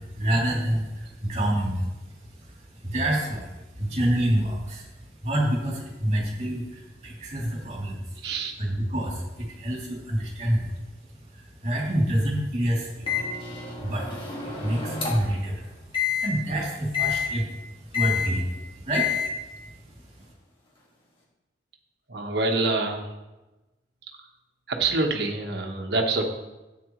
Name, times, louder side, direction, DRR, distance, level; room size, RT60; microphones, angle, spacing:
voice 1, 0.0-8.2 8.6-10.8 11.3-13.1 13.8-15.7 16.0-19.7 20.2-20.3, right 1 dB, 35° right, -3 dB, 2.9 m, -28 dB
voice 2, 8.2-8.5 22.1-23.0 24.7-26.3, right 3 dB, 60° right, 2 dB, 1.3 m, -26 dB
Microwave oven, 13.1-15.4 15.9-16.3 16.9-17.3 17.9-18.3 18.9-19.3, left 7 dB, 30° left, 2.0 m, -28 dB
13.0 x 8.6 x 3.2 m, 1.1 s
head